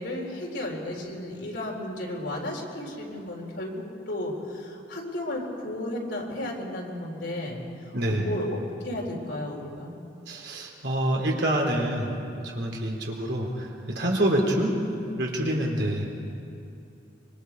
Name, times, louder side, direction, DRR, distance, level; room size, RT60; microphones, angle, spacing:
voice 1, 0.0-7.6 8.1-8.6 8.8-9.9, left 1 dB, 90° left, -1 dB, 4.1 m, -33 dB
voice 2, 7.9-8.3 10.3-12.1 12.4-14.8 15.2-16.1, right 1 dB, 75° right, -1 dB, 3.6 m, -26 dB
25.5 x 23.5 x 4.8 m, 2.7 s
head